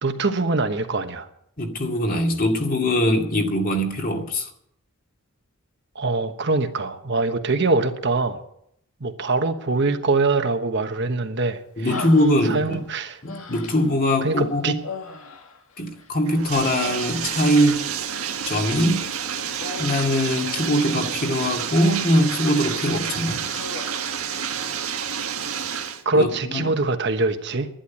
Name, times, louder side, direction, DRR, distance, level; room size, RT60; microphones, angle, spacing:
voice 1, 0.0-1.3 5.9-8.4 9.0-11.6 12.5-13.2 14.2-14.7 26.0-27.7, right 3 dB, 55° right, 7 dB, 1.2 m, -23 dB
voice 2, 1.6-4.5 11.8-12.8 13.2-14.8 15.8-17.9 18.5-19.1 19.8-23.5 26.1-26.7, equal, 40° left, 2 dB, 2.3 m, -22 dB
Human voice, 11.9-12.8 13.2-14.0 14.8-16.2 16.5-17.6 19.6-20.3 21.3-22.3 22.7-22.9 23.3-24.1, left 3 dB, 80° left, 2.1 m, -38 dB
Bathtub (filling or washing), 16.3-26.0, right 8 dB, 85° right, 1.6 m, -29 dB
11.5 x 11.5 x 8.5 m, 0.72 s
head